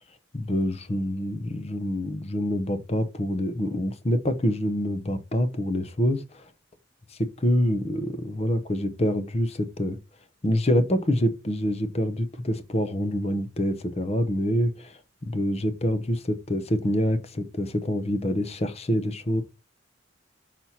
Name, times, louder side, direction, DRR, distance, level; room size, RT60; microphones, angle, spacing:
voice 1, 0.3-6.5 7.4-10.0 10.4-19.4, equal, 35° left, 0.8 m, -26 dB
5.9 x 4.3 x 4.2 m
head